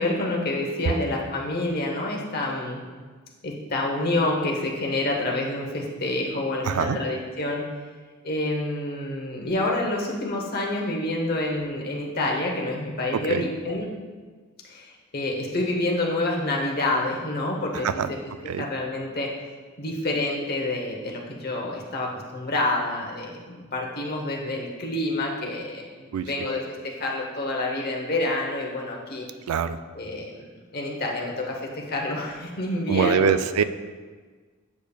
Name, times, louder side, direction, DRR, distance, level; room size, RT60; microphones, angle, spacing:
voice 1, 0.0-2.9 3.4-7.7 8.2-13.9 14.6-18.2 18.6-19.3 19.8-29.3 29.9-30.4 30.7-33.4, left 2 dB, 45° left, -1 dB, 0.9 m, -28 dB
voice 2, 6.6-7.0 13.3-13.5 17.8-18.1 18.5-18.7 26.1-26.3 29.5-29.8 32.9-33.6, right 7 dB, 90° right, 12 dB, 0.3 m, -23 dB
8.4 x 5.1 x 2.3 m, 1.4 s
head